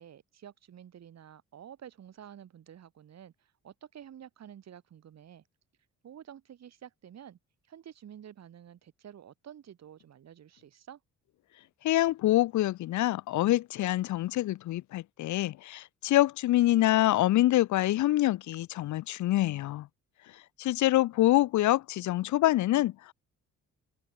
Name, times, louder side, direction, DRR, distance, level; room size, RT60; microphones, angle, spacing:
voice 1, 0.0-5.4 6.0-7.4 7.7-11.0, right 9 dB, 60° right, 3.4 m, -50 dB
voice 2, 11.8-19.9 20.6-23.1, left 15 dB, 70° left, 0.8 m, -26 dB
open air
cardioid pair, 90°, 30 cm